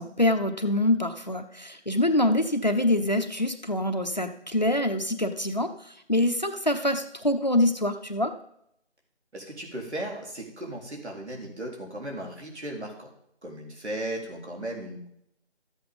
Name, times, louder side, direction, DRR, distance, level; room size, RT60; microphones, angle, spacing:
voice 1, 0.0-5.7 6.1-8.3, left 1 dB, 40° left, 7 dB, 0.8 m, -25 dB
voice 2, 9.3-13.1 13.4-15.1, right 1 dB, 70° right, 0 dB, 4.0 m, -36 dB
13.5 x 8.0 x 5.3 m, 0.75 s
figure-of-eight pair, 175°, 34 cm